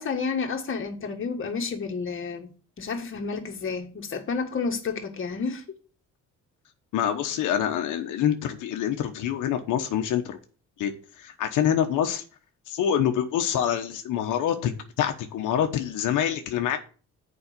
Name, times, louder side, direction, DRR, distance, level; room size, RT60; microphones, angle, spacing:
voice 1, 0.0-2.5 2.8-5.6, left 5 dB, 45° left, 1.8 m, -30 dB
voice 2, 6.9-10.4 10.8-12.2 12.7-14.7 15.0-16.8, left 9 dB, 85° left, 1.0 m, -26 dB
7.2 x 4.9 x 6.5 m
cardioid pair, 90°, 30 cm